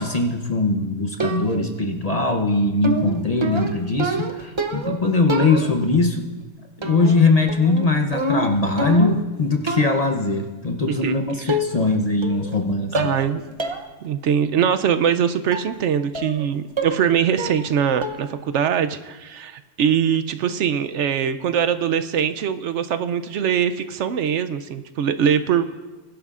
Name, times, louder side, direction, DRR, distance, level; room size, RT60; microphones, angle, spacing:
voice 1, 0.0-6.3 6.8-13.1, left 3 dB, 35° left, 4 dB, 0.7 m, -21 dB
sound 1, 1.2-1.8 2.8-5.0 5.3-6.0 6.8-7.2 7.5-9.3 9.7-10.0 11.0-11.1 11.5-12.0 12.2-12.6 12.9-13.3 13.6-13.8 14.2-14.3 15.5-15.7 16.1-16.5 16.8-17.1 17.4-17.7 18.0-18.4, right 2 dB, 30° right, 0.6 m, -27 dB
voice 2, 10.9-11.9 12.9-13.4 14.0-25.6, right 8 dB, 70° right, 11 dB, 0.8 m, -22 dB
21.5 x 11.5 x 2.5 m, 1.2 s
omnidirectional pair, 1.3 m